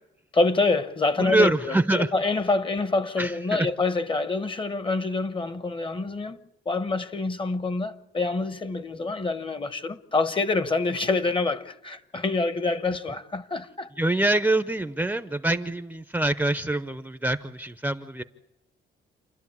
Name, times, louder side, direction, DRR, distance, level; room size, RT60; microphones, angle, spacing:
voice 1, 0.3-13.9, left 3 dB, 25° left, 1.0 m, -26 dB
voice 2, 1.2-2.1 3.2-3.7 14.0-18.2, right 2 dB, 10° right, 0.7 m, -25 dB
28.5 x 11.5 x 8.5 m
cardioid pair, 90°, 20 cm